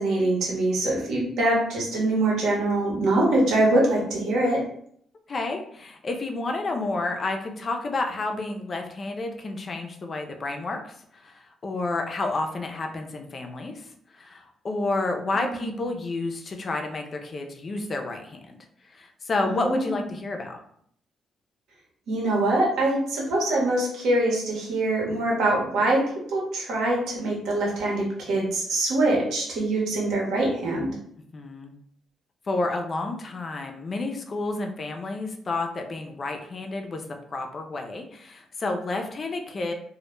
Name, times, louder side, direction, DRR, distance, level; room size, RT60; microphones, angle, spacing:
voice 1, 0.0-4.6 15.5-15.7 19.4-20.0 22.1-30.9, right 2 dB, 85° right, -2 dB, 0.8 m, -24 dB
voice 2, 5.3-18.6 18.9-20.6 31.3-31.7 32.5-37.0 37.3-39.7, left 2 dB, 30° left, 3 dB, 0.3 m, -30 dB
2.1 x 2.0 x 3.0 m, 0.66 s
cardioid pair, 155°, 0 cm